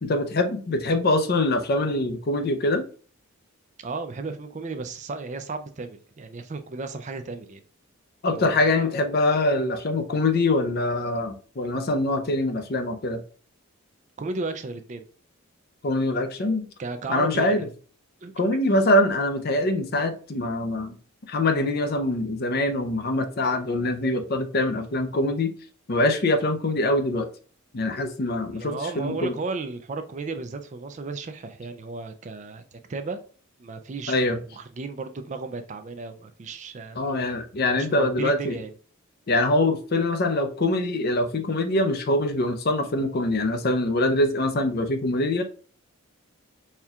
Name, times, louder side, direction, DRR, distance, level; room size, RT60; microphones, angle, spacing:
voice 1, 0.0-2.8 8.2-13.2 15.8-16.7 17.1-17.7 18.4-21.0 21.3-25.5 25.9-27.3 27.7-29.3 34.1-34.4 37.0-38.6 39.3-45.4, left 2 dB, 45° left, 7 dB, 0.5 m, -24 dB
voice 2, 3.8-7.6 8.3-8.7 14.2-15.0 16.8-17.7 18.2-18.8 28.5-33.2 33.6-37.0 37.7-38.7, right 3 dB, 35° right, 8 dB, 0.3 m, -34 dB
4.3 x 2.3 x 3.5 m, 0.40 s
head